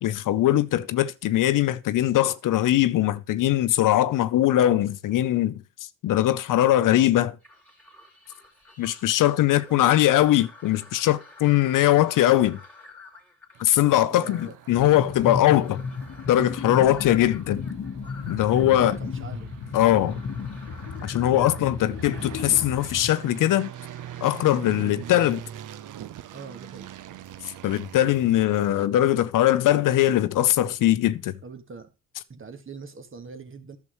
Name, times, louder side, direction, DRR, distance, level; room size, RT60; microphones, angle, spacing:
voice 1, 0.0-5.6 6.0-7.4 8.8-12.6 13.6-15.8 16.3-17.6 18.3-19.0 19.7-20.2 21.0-23.7 24.2-25.4 27.6-31.4, left 13 dB, 60° left, 0.6 m, -21 dB
sound 1, 7.4-24.4, left 3 dB, 5° left, 2.8 m, -50 dB
sound 2, 13.5-28.9, right 11 dB, 60° right, 0.8 m, -43 dB
voice 2, 14.1-14.5 18.8-19.5 26.3-26.9 31.4-31.9 32.3-33.8, right 5 dB, 35° right, 1.7 m, -42 dB
sound 3, 14.7-23.1, left 5 dB, 45° left, 1.2 m, -34 dB
10.5 x 6.9 x 3.1 m
supercardioid pair, 70°, 36 cm